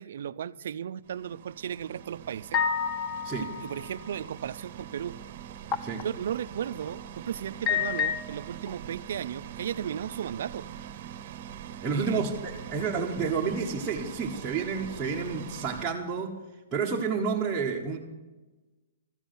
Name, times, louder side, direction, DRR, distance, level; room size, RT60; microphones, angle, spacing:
voice 1, 0.0-2.6 3.4-5.2 6.0-10.7 11.9-12.2, right 9 dB, 60° right, 0.5 m, -35 dB
sound 1, 1.0-15.9, right 9 dB, 40° right, 0.9 m, -43 dB
sound 2, 2.5-4.0 5.7-6.0 6.7-6.9 7.7-8.7, left 7 dB, 20° left, 0.6 m, -29 dB
voice 2, 11.8-16.4 16.7-18.0, right 5 dB, 10° right, 1.1 m, -30 dB
14.0 x 7.1 x 9.1 m
hypercardioid pair, 165°, 0 cm